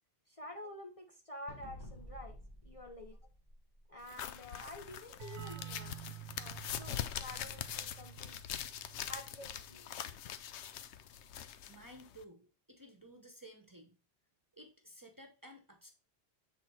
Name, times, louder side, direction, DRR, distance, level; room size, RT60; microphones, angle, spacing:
voice 1, 0.3-3.2 3.9-6.0 6.4-8.4 9.1-9.9, left 1 dB, 35° left, 2 dB, 0.7 m, -49 dB
sound 1, 1.5-4.2, equal, 20° left, 1.1 m, -51 dB
sound 2, 4.1-12.2, left 10 dB, 90° left, 0.9 m, -43 dB
sound 3, 5.2-10.6, right 13 dB, 80° right, 0.9 m, -51 dB
voice 2, 11.7-14.0 14.5-15.9, right 1 dB, 20° right, 3 dB, 0.8 m, -55 dB
7.5 x 3.8 x 4.2 m, 0.33 s
omnidirectional pair, 1.1 m